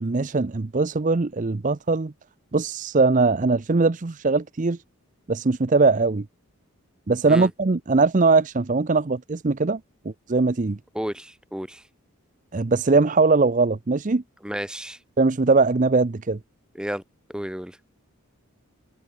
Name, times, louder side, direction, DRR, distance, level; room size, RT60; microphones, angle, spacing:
voice 1, 0.0-2.1 2.5-4.8 5.3-6.3 7.1-9.8 10.3-10.8 12.5-14.2 15.2-16.4, right 3 dB, 35° right, 0.6 m, -21 dB
voice 2, 10.9-11.8 14.4-15.0 16.7-17.0 17.3-17.8, equal, 5° right, 1.4 m, -32 dB
head